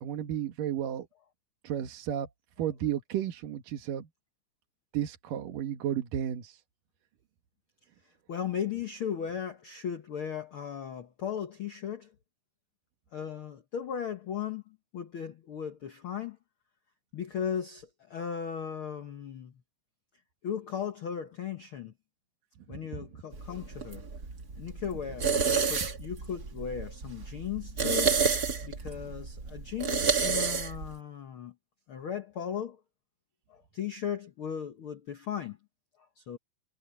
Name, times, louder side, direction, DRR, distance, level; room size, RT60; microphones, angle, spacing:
voice 1, 0.0-1.1 1.6-2.3 2.6-4.1 4.9-6.6, right 10 dB, 75° right, 3.1 m, -33 dB
voice 2, 8.3-12.1 13.1-16.4 17.1-19.5 20.4-21.9 22.7-24.1 24.6-28.2 28.6-31.5 31.9-32.8 33.5-35.6 36.2-36.4, left 8 dB, 60° left, 1.4 m, -37 dB
sound 1, 23.3-30.9, right 5 dB, 30° right, 2.3 m, -30 dB
omnidirectional pair, 3.9 m